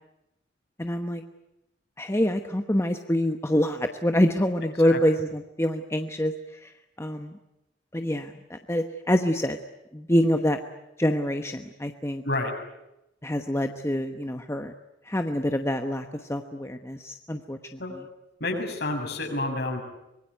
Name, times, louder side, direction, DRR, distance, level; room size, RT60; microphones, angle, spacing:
voice 1, 0.8-1.2 2.0-6.3 6.6-6.7 7.0-7.3 7.9-9.6 9.9-10.6 11.0-12.2 13.2-14.7 15.1-17.8, equal, 15° left, 6 dB, 1.1 m, -26 dB
voice 2, 18.4-19.8, left 2 dB, 60° left, 3 dB, 6.8 m, -29 dB
25.0 x 21.5 x 9.4 m, 0.90 s
head